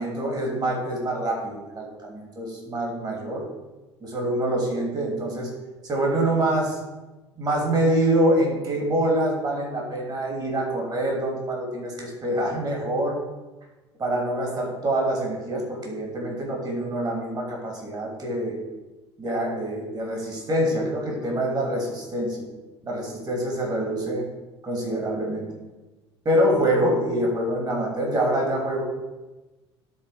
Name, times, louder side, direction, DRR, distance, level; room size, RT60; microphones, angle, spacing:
voice 1, 0.0-3.5 4.0-5.5 5.8-6.8 7.4-13.2 14.0-18.6 19.2-22.5 22.8-24.3 24.6-25.4 26.2-28.8, right 1 dB, 25° right, 0 dB, 2.8 m, -25 dB
12.5 x 4.2 x 5.0 m, 1.1 s
figure-of-eight pair, 65°, 15 cm